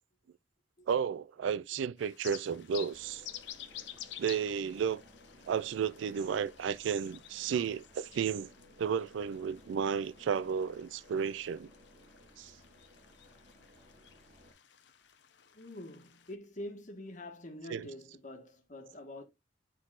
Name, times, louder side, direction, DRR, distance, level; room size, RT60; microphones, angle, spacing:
voice 1, 0.9-3.2 4.2-5.0 5.5-8.5 8.8-11.7 12.4-12.5 17.7-17.9, right 7 dB, 75° right, 0.3 m, -33 dB
sound 1, 2.0-16.4, left 11 dB, 65° left, 0.7 m, -52 dB
sound 2, 2.9-14.5, left 1 dB, 45° right, 4.6 m, -59 dB
voice 2, 15.4-19.2, left 1 dB, 40° left, 1.5 m, -46 dB
9.6 x 4.1 x 2.4 m
head